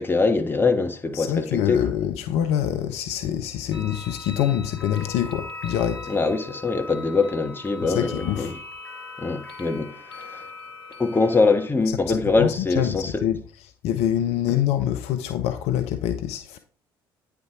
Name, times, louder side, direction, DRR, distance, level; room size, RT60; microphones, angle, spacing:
voice 1, 0.0-1.8 6.1-8.6 9.2-10.4 11.0-13.1, left 3 dB, 15° left, 1.3 m, -23 dB
voice 2, 1.1-6.1 7.9-8.5 12.1-13.4 13.8-16.6, left 10 dB, 60° left, 0.6 m, -25 dB
sound 1, 3.7-11.7, left 3 dB, 90° left, 0.9 m, -40 dB
9.2 x 4.6 x 3.7 m
figure-of-eight pair, 55°, 12 cm